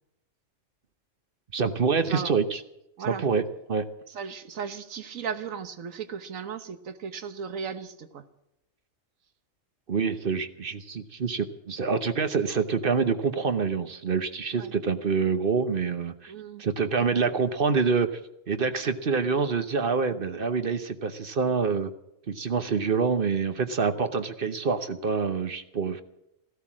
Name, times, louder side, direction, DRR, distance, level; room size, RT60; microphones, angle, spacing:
voice 1, 1.5-2.6 3.1-3.4 3.7-3.9 9.9-16.3 16.6-18.1 18.5-21.9 22.3-26.0, right 5 dB, 45° right, 10 dB, 1.0 m, -26 dB
voice 2, 4.1-8.2 14.5-14.7 16.3-16.6, right 6 dB, 80° right, 11 dB, 1.5 m, -36 dB
14.5 x 13.0 x 7.4 m, 0.85 s
omnidirectional pair, 1.4 m